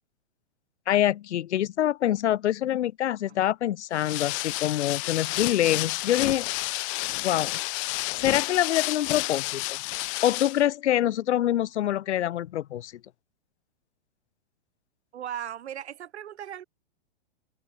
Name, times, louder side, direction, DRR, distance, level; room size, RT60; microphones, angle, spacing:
voice 1, 0.9-6.5 7.2-7.6 8.2-9.8 10.2-12.9, left 12 dB, 85° left, 0.8 m, -25 dB
sound 1, 3.9-10.6, left 29 dB, 30° left, 0.8 m, -31 dB
voice 2, 15.1-16.6, right 10 dB, 75° right, 6.4 m, -37 dB
open air
hypercardioid pair, 155°, 33 cm